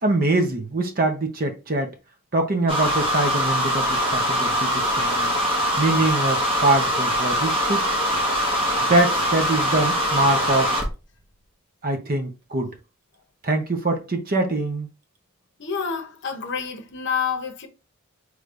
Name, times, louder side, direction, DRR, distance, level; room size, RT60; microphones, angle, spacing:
voice 1, 0.0-1.9 2.3-5.4 5.8-7.9 8.8-10.8 11.8-12.8 13.4-14.9, right 2 dB, 40° right, 0.8 m, -23 dB
sound 1, 2.7-10.9, equal, 25° right, 1.3 m, -23 dB
voice 2, 15.6-17.7, left 6 dB, 55° left, 0.8 m, -28 dB
5.1 x 3.3 x 2.5 m
head